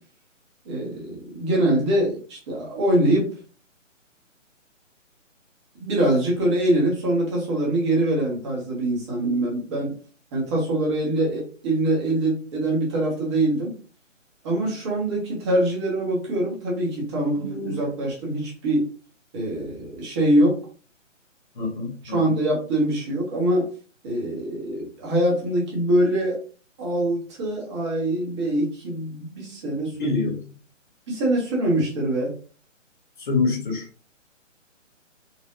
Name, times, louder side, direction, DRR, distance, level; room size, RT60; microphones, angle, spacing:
voice 1, 0.6-3.3 5.8-9.9 10.3-13.7 14.4-18.8 19.3-20.5 22.0-23.6 24.0-26.4 26.8-30.1 31.1-32.3, right 1 dB, 20° right, -3 dB, 1.3 m, -23 dB
voice 2, 21.6-22.4 29.9-30.4 33.2-33.9, left 3 dB, 40° left, 0 dB, 1.2 m, -25 dB
4.2 x 2.7 x 2.6 m, 0.39 s
figure-of-eight pair, 140°, 39 cm